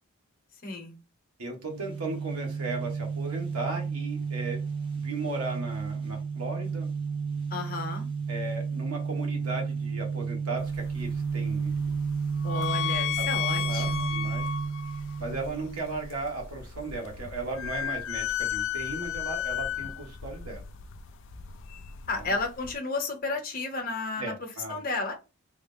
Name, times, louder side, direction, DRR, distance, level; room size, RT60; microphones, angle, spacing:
voice 1, 0.6-1.0 7.5-8.1 12.4-14.1 22.1-25.1, left 3 dB, 40° left, 0.9 m, -32 dB
voice 2, 1.4-4.6 4.9-6.9 8.3-11.7 13.2-13.3 13.5-14.5 15.2-20.6 22.1-22.2 24.2-24.8, right 2 dB, 85° right, 1.3 m, -36 dB
sound 1, 1.6-16.2, right 5 dB, 25° right, 0.8 m, -32 dB
sound 2, 10.6-22.8, left 10 dB, 60° left, 0.4 m, -34 dB
3.5 x 2.1 x 3.4 m
head